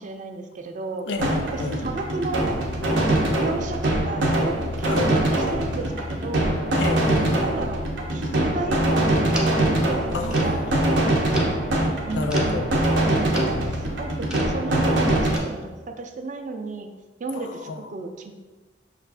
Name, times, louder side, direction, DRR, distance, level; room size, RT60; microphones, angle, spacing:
voice 1, 0.0-1.1 1.5-2.6 3.4-6.6 7.3-11.6 12.0-12.8 13.0-16.9 17.2-18.3, right 3 dB, 45° right, 5 dB, 0.4 m, -33 dB
voice 2, 1.1-1.8 4.8-5.1 6.8-7.4 10.1-10.7 12.1-12.7 17.3-17.4 17.7-17.8, left 3 dB, 75° left, 6 dB, 0.4 m, -30 dB
sound 1, 1.2-15.4, right 1 dB, 85° right, 0.8 m, -23 dB
sound 2, 9.3-9.7 10.3-10.6 11.3-11.6 12.3-12.5 13.3-13.6 14.3-14.6 15.3-15.4, equal, 5° right, 0.6 m, -35 dB
5.5 x 2.4 x 3.4 m, 1.2 s
head